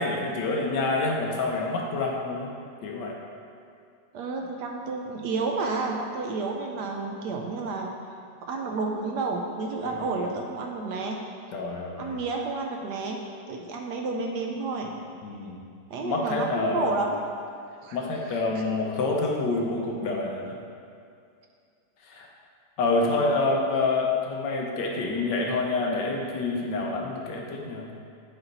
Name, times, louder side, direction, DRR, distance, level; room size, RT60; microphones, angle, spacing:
voice 1, 0.0-2.6 2.8-3.2 9.8-10.2 11.5-12.1 15.2-15.6 16.0-17.0 17.9-20.6 22.0-22.3 22.8-27.9, left 3 dB, 70° left, -1 dB, 1.4 m, -27 dB
voice 2, 4.1-8.0 8.4-11.2 12.0-13.2 13.5-14.9 15.9-17.2 17.8-18.0 23.2-23.3, right 3 dB, 70° right, 2 dB, 1.1 m, -30 dB
8.0 x 4.3 x 3.9 m, 2.3 s
omnidirectional pair, 2.0 m